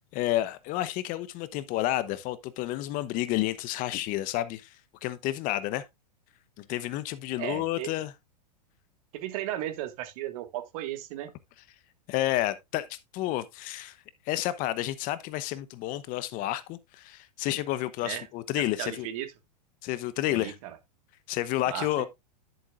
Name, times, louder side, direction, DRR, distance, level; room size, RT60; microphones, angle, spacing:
voice 1, 0.1-5.8 6.6-8.1 12.1-14.0 14.3-19.1 19.8-20.6 21.3-22.1, left 15 dB, 40° left, 0.9 m, -30 dB
voice 2, 7.4-7.9 9.1-11.3 18.0-18.2 18.8-19.3 20.3-20.8 21.7-22.1, right 13 dB, 55° right, 1.7 m, -35 dB
10.5 x 7.4 x 2.4 m
hypercardioid pair, 110°, 21 cm